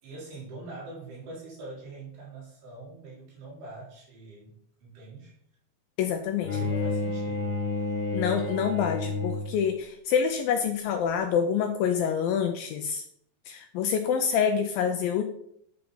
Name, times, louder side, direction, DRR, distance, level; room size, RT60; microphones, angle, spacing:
voice 1, 0.0-5.3 6.5-7.6, right 2 dB, 80° right, -5 dB, 5.6 m, -43 dB
voice 2, 6.0-6.5 8.1-13.1 13.5-15.2, left 7 dB, 85° left, 6 dB, 2.1 m, -26 dB
Bowed string instrument, 6.4-9.7, left 3 dB, 60° left, 3.7 m, -30 dB
9.2 x 6.8 x 4.0 m, 0.70 s
omnidirectional pair, 4.7 m